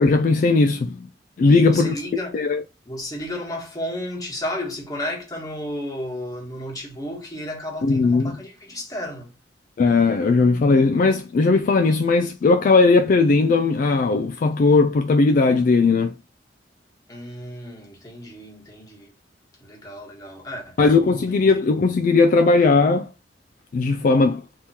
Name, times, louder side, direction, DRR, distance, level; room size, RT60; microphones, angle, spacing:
voice 1, 0.0-1.1 1.4-2.0 2.3-2.6 7.8-8.4 9.8-16.1 20.8-23.1 23.7-24.4, left 3 dB, 50° left, 0.3 m, -18 dB
voice 2, 1.4-2.4 2.8-9.3 17.1-19.1 19.6-20.8 21.1-21.3, left 1 dB, 20° left, 1.5 m, -33 dB
3.6 x 2.9 x 4.2 m
head